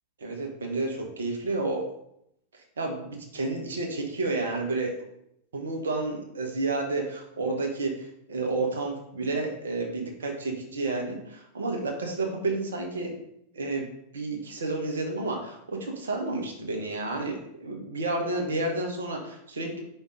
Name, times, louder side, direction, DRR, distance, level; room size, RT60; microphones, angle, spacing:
voice 1, 0.2-1.8 2.8-4.9 5.5-13.2 13.5-13.8 14.1-19.8, right 2 dB, 65° right, 1 dB, 1.4 m, -30 dB
5.3 x 4.3 x 5.1 m, 0.76 s
figure-of-eight pair, 90°, 0 cm